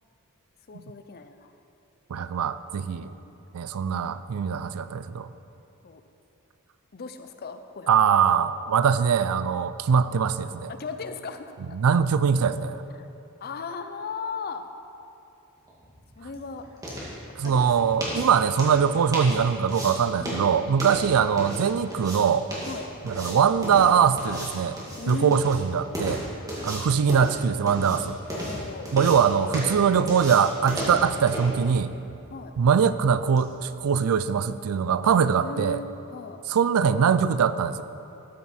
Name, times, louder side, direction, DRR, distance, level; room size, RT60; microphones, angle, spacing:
voice 1, 0.7-1.5 2.2-2.5 3.0-3.4 5.8-6.0 6.9-8.5 10.7-11.5 13.0-13.1 13.4-14.7 16.2-16.7 17.4-17.6 20.2-20.5 22.7-22.9 25.0-25.4 26.2-26.3 28.3-28.9 32.3-32.5 35.4-36.5, left 4 dB, 45° left, 9 dB, 0.5 m, -37 dB
voice 2, 2.1-3.1 3.5-5.3 7.9-10.7 11.7-12.8 17.4-22.4 23.0-24.8 25.1-26.2 26.6-28.2 28.9-31.9 32.6-35.8 36.5-37.8, right 7 dB, 80° right, 14 dB, 0.4 m, -22 dB
sound 1, 15.7-33.5, equal, 15° right, 2.1 m, -36 dB
13.0 x 7.0 x 4.3 m, 2.8 s
head